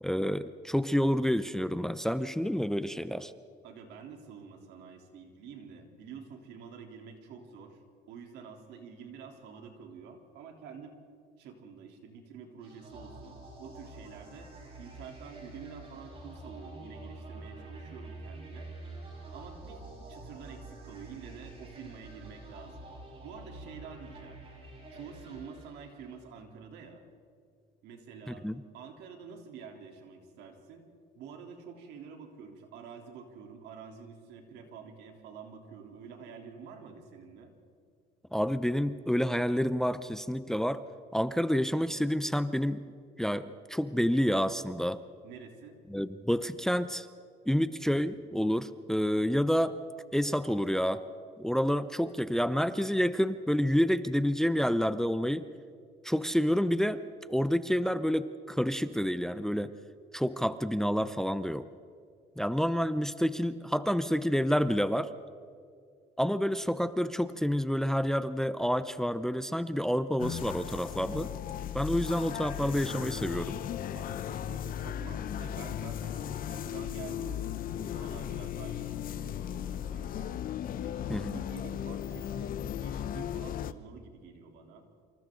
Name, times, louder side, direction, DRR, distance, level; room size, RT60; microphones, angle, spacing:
voice 1, 0.0-3.3 28.3-28.5 38.3-40.8 41.1-42.8 43.2-45.0 45.9-47.1 47.5-49.8 50.1-51.0 51.4-55.4 56.0-57.0 57.3-59.7 60.1-61.7 62.4-65.1 66.2-71.3 71.7-73.6 81.1-81.4, equal, 5° left, 13 dB, 0.7 m, -29 dB
voice 2, 3.6-7.8 8.1-11.0 11.4-14.5 14.8-18.7 19.3-22.9 23.2-24.4 24.9-27.0 27.8-28.4 28.7-30.9 31.1-37.5 45.2-45.8 73.9-80.3 80.8-84.8, right 6 dB, 85° right, 2 dB, 3.4 m, -48 dB
sound 1, 12.6-26.3, right 2 dB, 35° right, 7.8 m, -47 dB
sound 2, 70.2-83.7, left 10 dB, 55° left, 0.8 m, -36 dB
27.5 x 26.5 x 3.9 m, 2.2 s
cardioid pair, 110°, 17 cm